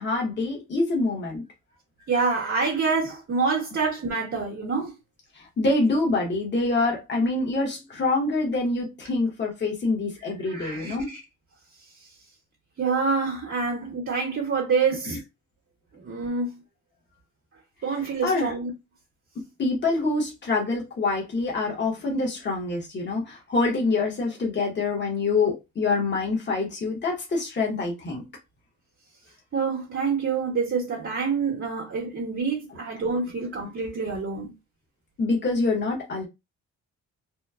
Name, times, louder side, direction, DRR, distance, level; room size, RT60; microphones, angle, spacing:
voice 1, 0.0-1.4 5.3-11.1 15.1-15.2 18.2-18.5 19.6-28.2 35.2-36.3, left 3 dB, 35° left, 1.1 m, -26 dB
voice 2, 2.1-4.9 10.4-11.2 12.8-15.2 16.0-16.5 17.8-18.7 29.5-34.5, right 5 dB, 45° right, 1.0 m, -27 dB
2.9 x 2.2 x 2.3 m
cardioid pair, 90°, 30 cm